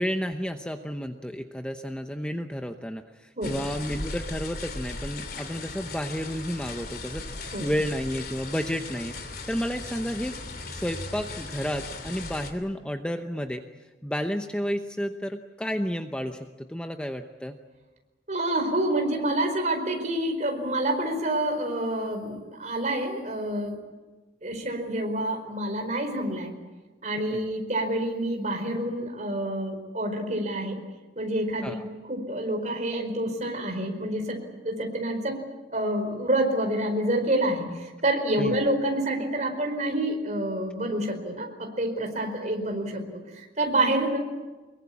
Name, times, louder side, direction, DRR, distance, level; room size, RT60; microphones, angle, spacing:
voice 1, 0.0-10.4 10.7-13.6 14.0-17.6 27.3-27.4 31.6-31.9 38.4-38.5, equal, 5° left, 5 dB, 0.8 m, -31 dB
sound 1, 3.4-12.5, left 3 dB, 55° left, 3.0 m, -37 dB
voice 2, 18.3-23.8 24.4-26.5 27.0-30.8 31.2-31.8 32.1-34.4 34.6-35.4 35.7-43.0 43.3-44.2, right 1 dB, 40° right, 4 dB, 4.8 m, -28 dB
24.5 x 22.5 x 8.6 m, 1.3 s
head